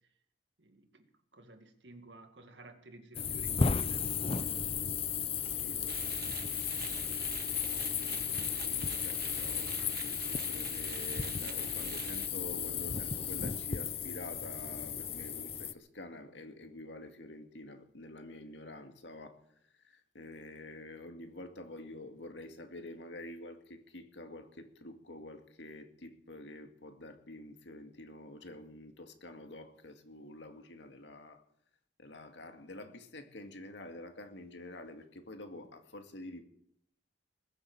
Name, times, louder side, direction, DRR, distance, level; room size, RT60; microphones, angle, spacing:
voice 1, 0.6-1.1 1.3-4.9 5.7-7.0, right 1 dB, 75° right, 2.2 m, -55 dB
sound 1, 3.1-15.7, left 7 dB, 35° left, 0.6 m, -35 dB
voice 2, 5.3-5.9 7.6-19.4 19.7-31.4 32.0-36.4, left 1 dB, 80° left, 2.2 m, -48 dB
sound 2, 5.9-12.3, right 8 dB, 60° right, 1.3 m, -45 dB
21.0 x 8.0 x 8.2 m
head